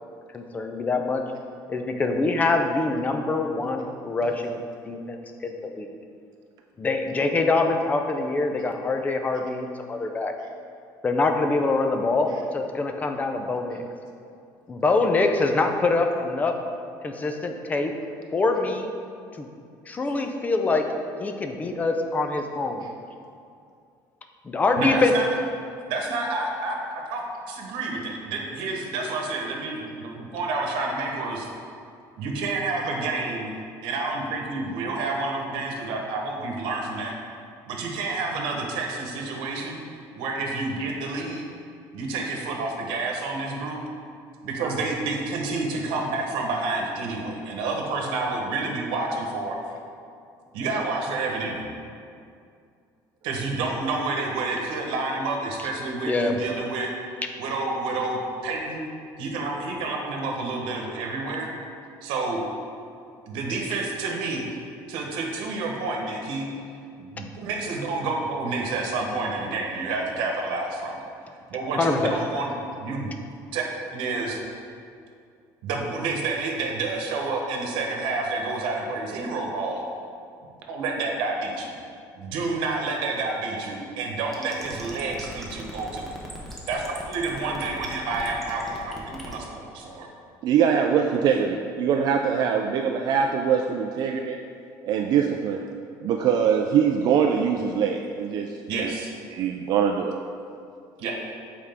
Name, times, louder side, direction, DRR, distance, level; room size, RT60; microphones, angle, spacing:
voice 1, 0.3-1.2 1.7-4.6 4.9-5.9 6.8-10.3 11.0-13.8 14.7-16.5 17.0-17.9 18.3-18.9 19.4-19.5 19.9-20.8 21.2-22.9 24.4-25.1 55.6-55.7 56.0-56.3 71.8-72.1, left 3 dB, 20° left, 4 dB, 0.5 m, -24 dB
voice 2, 24.8-25.3 25.9-31.5 32.2-33.5 33.8-37.1 37.7-39.8 40.1-41.4 41.9-43.8 44.4-49.6 50.5-51.6 53.2-56.9 57.4-58.8 59.2-61.5 62.0-62.4 63.3-64.5 64.9-66.5 67.0-71.0 71.5-72.5 72.8-73.1 73.5-73.6 73.9-74.4 75.6-79.8 80.7-81.7 82.2-86.1 86.7-90.1 98.7-99.1 101.0-101.1, right 3 dB, 85° right, 0 dB, 1.1 m, -29 dB
sound 1, 84.3-89.4, equal, 5° left, 1.0 m, -39 dB
voice 3, 90.4-94.4 94.8-95.6 96.0-98.5 98.7-98.9 99.3-100.1, right 7 dB, 55° right, 3 dB, 0.4 m, -23 dB
7.8 x 4.7 x 3.5 m, 2.4 s
cardioid pair, 145°, 8 cm